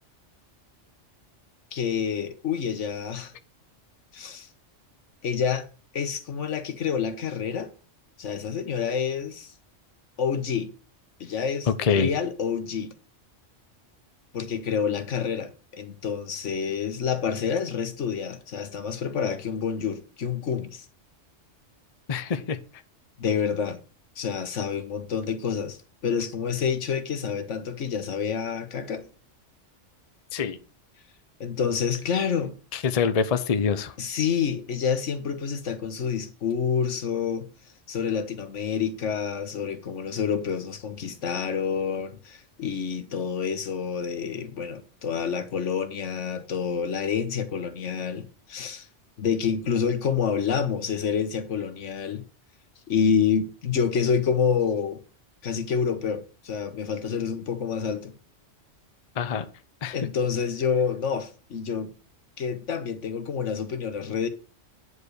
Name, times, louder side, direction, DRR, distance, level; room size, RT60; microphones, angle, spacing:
voice 1, 1.7-3.3 4.1-4.5 5.2-5.7 5.9-7.7 8.2-9.5 10.2-10.7 11.2-12.9 14.3-20.8 23.2-23.8 24.2-29.0 31.4-32.5 34.0-37.5 37.9-48.9 49.2-52.2 52.9-55.0 55.4-58.1 59.9-61.9 62.4-64.3, left 7 dB, 75° left, 1.4 m, -28 dB
voice 2, 11.7-12.1 22.1-22.6 30.3-30.6 32.7-33.9 59.2-59.5 59.8-60.0, left 6 dB, 40° left, 0.7 m, -25 dB
9.7 x 4.9 x 6.5 m
omnidirectional pair, 1.3 m